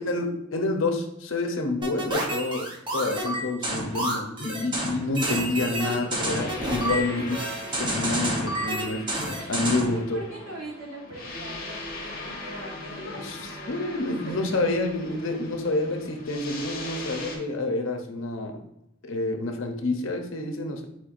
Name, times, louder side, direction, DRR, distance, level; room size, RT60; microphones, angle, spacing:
voice 1, 0.0-7.4 7.8-9.1 9.5-10.2 13.0-13.4 13.7-18.6 19.0-20.8, left 2 dB, 70° left, 4 dB, 0.7 m, -28 dB
sound 1, 1.8-10.0, right 1 dB, 25° right, 0.8 m, -29 dB
sound 2, 5.2-17.4, left 2 dB, 45° left, 1.0 m, -40 dB
voice 2, 9.4-14.5 15.1-15.2, right 1 dB, 85° right, -2 dB, 1.4 m, -42 dB
4.5 x 4.3 x 2.5 m, 0.81 s
head